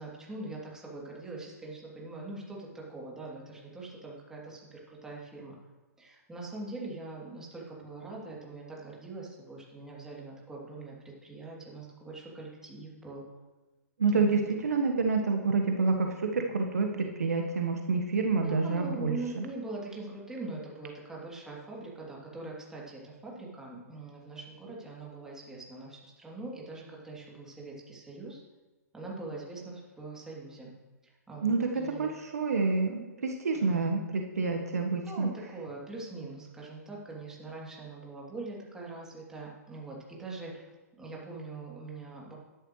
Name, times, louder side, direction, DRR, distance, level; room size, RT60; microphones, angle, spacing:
voice 1, 0.0-5.6 6.0-13.2 14.1-14.4 18.4-28.4 28.9-30.7 31.0-32.0 33.6-33.9 35.0-40.7 41.0-42.3, right 2 dB, 5° right, -4 dB, 2.9 m, -42 dB
voice 2, 14.0-19.4 31.4-35.3, right 4 dB, 65° right, 3 dB, 1.3 m, -28 dB
12.5 x 10.5 x 3.2 m, 1.2 s
figure-of-eight pair, 120°, 9 cm